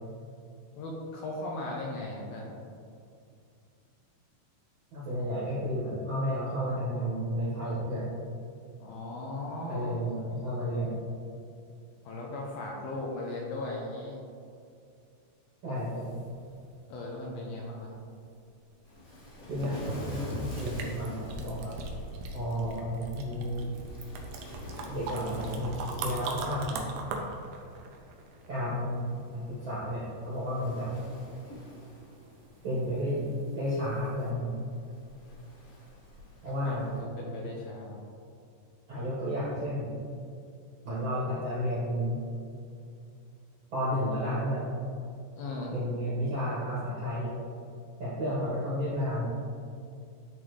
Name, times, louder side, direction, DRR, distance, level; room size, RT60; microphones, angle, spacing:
voice 1, 0.8-2.5 8.8-10.0 12.0-14.2 16.9-17.9 36.5-38.0 45.3-45.7, left 2 dB, 80° left, -2 dB, 2.3 m, -37 dB
voice 2, 4.9-8.1 9.7-11.0 15.6-16.1 19.5-21.7 22.3-23.7 24.9-26.8 28.5-30.9 32.6-33.3 33.5-34.5 36.4-36.9 38.9-39.9 40.8-42.2 43.7-44.7 45.7-47.3 48.0-49.2, equal, 55° right, -9 dB, 1.9 m, -32 dB
sound 1, 15.8-16.8 19.1-19.2 19.6-28.7 33.7-33.8 34.2-34.3, right 3 dB, 75° right, 2.3 m, -39 dB
Waves surf, 18.8-37.0, left 1 dB, 60° left, 0.9 m, -48 dB
11.0 x 3.8 x 3.2 m, 2.4 s
omnidirectional pair, 4.7 m